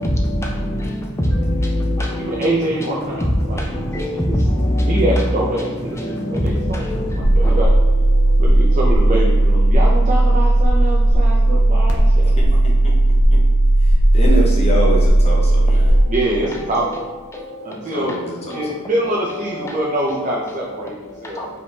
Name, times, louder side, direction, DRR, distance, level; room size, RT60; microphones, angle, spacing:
voice 1, 0.0-2.5 3.1-5.0 5.9-7.6 8.2-8.4 15.8-16.1 17.3-17.7 18.5-18.7 19.6-20.5 21.1-21.5, equal, 10° left, -1 dB, 0.5 m, -23 dB
voice 2, 1.9-4.4 4.8-7.7 8.4-12.6 16.1-17.1 17.6-18.1 18.5-21.5, right 1 dB, 35° right, -3 dB, 0.5 m, -25 dB
sound 1, 7.2-16.0, right 1 dB, 90° left, 0.7 m, -14 dB
voice 3, 14.1-15.9 17.9-18.6, right 1 dB, 30° left, -3 dB, 0.9 m, -24 dB
4.5 x 3.4 x 2.7 m, 1.3 s
head